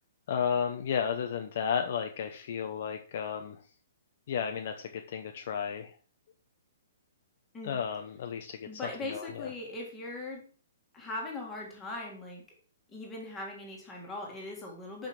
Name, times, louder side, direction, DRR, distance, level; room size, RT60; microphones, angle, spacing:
voice 1, 0.3-3.6 4.3-5.9 7.6-9.5, left 7 dB, 40° left, 5 dB, 0.6 m, -33 dB
voice 2, 8.7-10.5 10.9-12.4 12.9-15.1, left 2 dB, 10° left, -1 dB, 1.8 m, -40 dB
5.9 x 5.1 x 5.9 m, 0.40 s
hypercardioid pair, 180°, 0 cm